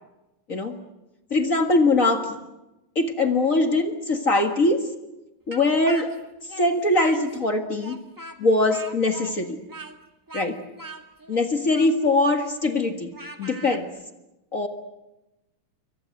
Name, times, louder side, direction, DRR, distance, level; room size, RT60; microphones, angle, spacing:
voice 1, 1.3-2.4 2.9-4.8 5.5-6.1 6.6-8.0 8.4-9.6 10.3-10.6 11.3-13.1 13.4-13.9 14.5-14.7, left 2 dB, 45° left, 5 dB, 1.0 m, -22 dB
Speech, 5.5-7.5 7.8-13.8, right 2 dB, 15° right, 0.7 m, -41 dB
29.0 x 23.5 x 7.7 m, 0.99 s
omnidirectional pair, 4.2 m